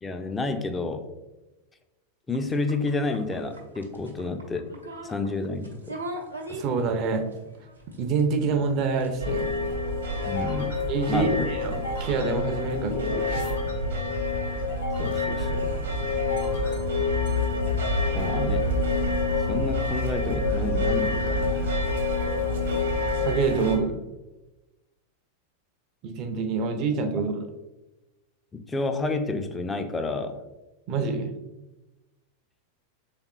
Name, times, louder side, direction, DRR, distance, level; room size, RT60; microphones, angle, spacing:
voice 1, 0.0-1.0 2.3-4.8 5.0-6.0 10.2-10.7 11.1-11.5 15.0-15.7 18.1-18.7 19.5-21.7 28.5-30.4, left 3 dB, 15° left, 7 dB, 0.4 m, -30 dB
sound 1, 2.3-11.4, right 1 dB, 85° right, 0.7 m, -43 dB
voice 2, 6.5-7.2 8.0-9.5 10.9-13.6 16.5-16.6 23.2-24.0 26.0-27.3 30.9-31.3, right 4 dB, 35° right, 5 dB, 0.5 m, -26 dB
sound 2, 9.2-23.8, left 2 dB, 65° right, 1.0 m, -27 dB
sound 3, 10.0-20.5, equal, 65° left, 1.4 m, -39 dB
4.2 x 3.5 x 2.3 m, 1.0 s
figure-of-eight pair, 90°, 0 cm